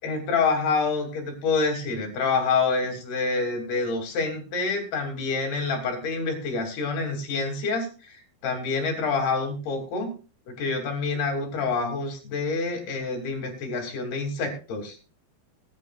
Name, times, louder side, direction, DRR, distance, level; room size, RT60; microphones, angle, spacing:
voice 1, 0.0-8.2 8.4-10.1 10.5-15.0, left 4 dB, 55° left, 2 dB, 4.6 m, -27 dB
20.5 x 10.5 x 2.5 m, 0.35 s
omnidirectional pair, 5.6 m